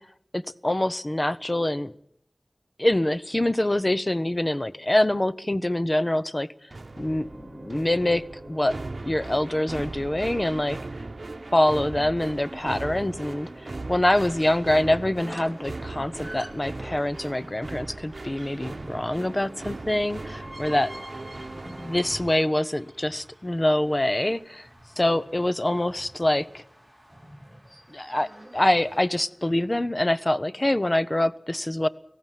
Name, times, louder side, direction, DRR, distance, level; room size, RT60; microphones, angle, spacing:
voice 1, 0.3-1.9 2.8-6.5 7.0-8.8 9.0-10.8 11.5-20.9 21.6-24.7 25.0-26.6 27.9-31.9, left 1 dB, 30° left, 14 dB, 0.8 m, -25 dB
sound 1, 6.7-22.3, right 2 dB, 75° right, 0.8 m, -38 dB
sound 2, 12.3-29.1, equal, 15° left, 4.0 m, -53 dB
sound 3, 15.3-17.6 19.8-23.8 27.4-29.7, equal, 5° right, 2.2 m, -47 dB
18.5 x 15.0 x 9.2 m, 0.74 s
wide cardioid pair, 50°, 0 cm